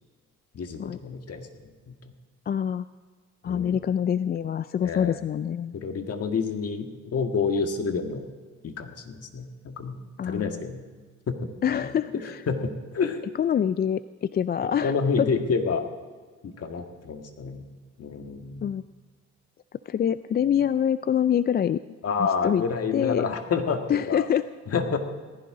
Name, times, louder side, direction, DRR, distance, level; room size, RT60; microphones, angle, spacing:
voice 1, 0.5-1.5 1.9-2.0 3.4-3.8 4.8-5.2 5.7-8.3 8.6-10.8 11.3-11.9 12.5-13.2 14.8-15.8 16.4-17.7 18.0-18.8 22.0-24.2 24.7-25.0, left 5 dB, 55° left, 5 dB, 1.8 m, -29 dB
voice 2, 2.5-2.9 3.4-5.7 10.2-10.6 11.6-12.4 13.4-15.3 18.6-18.8 19.9-21.8 22.2-22.6 22.9-23.2 23.9-24.5, left 9 dB, 35° left, 14 dB, 0.4 m, -25 dB
18.5 x 15.5 x 3.8 m, 1.5 s
cardioid pair, 90°, 30 cm